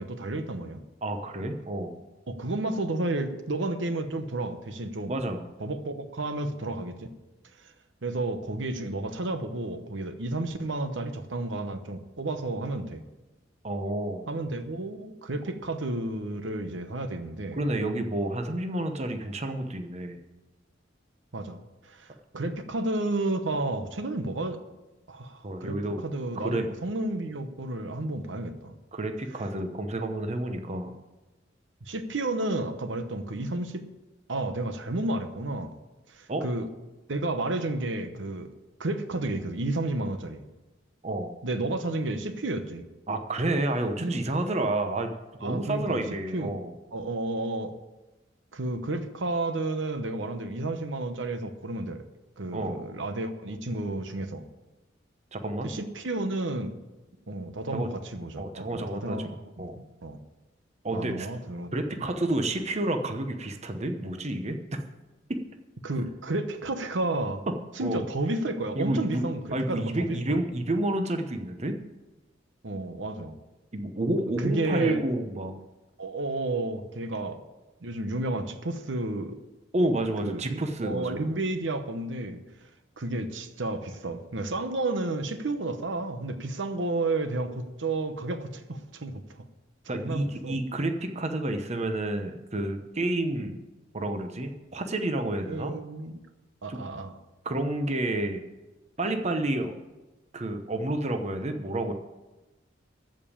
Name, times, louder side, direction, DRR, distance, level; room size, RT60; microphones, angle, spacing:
voice 1, 0.0-0.8 2.3-5.1 5.6-7.1 7.6-7.7 8.0-13.0 14.3-17.7 21.3-24.6 25.1-25.8 26.0-28.8 31.9-33.9 34.3-35.7 36.1-36.7 37.1-38.5 38.8-40.4 41.4-42.8 44.0-44.1 45.4-46.0 46.3-46.5 46.9-47.7 48.5-52.0 52.4-54.4 55.6-56.7 57.3-60.2 60.9-61.7 62.0-62.1 65.8-67.4 67.8-70.4 72.6-73.4 74.4-75.0 76.0-77.4 77.8-79.4 80.2-82.4 83.0-89.2 89.9-90.6 95.5-96.2 96.6-97.2, right 2 dB, 70° right, 8 dB, 0.9 m, -31 dB
voice 2, 1.0-2.0 5.1-5.4 13.6-14.3 17.5-20.2 25.4-26.0 26.4-26.6 28.9-30.9 36.3-36.5 41.0-41.3 43.1-45.1 45.4-46.7 52.5-52.9 55.3-55.7 57.7-57.9 58.4-59.3 59.6-59.8 60.8-61.3 61.7-64.6 65.3-65.4 67.8-68.0 68.8-71.8 73.7-75.5 79.7-81.2 89.9-93.6 93.9-95.7 96.7-96.8 97.4-98.4 99.0-99.8 100.3-101.9, right 1 dB, 35° right, 6 dB, 0.9 m, -30 dB
14.0 x 5.3 x 8.6 m, 1.1 s
head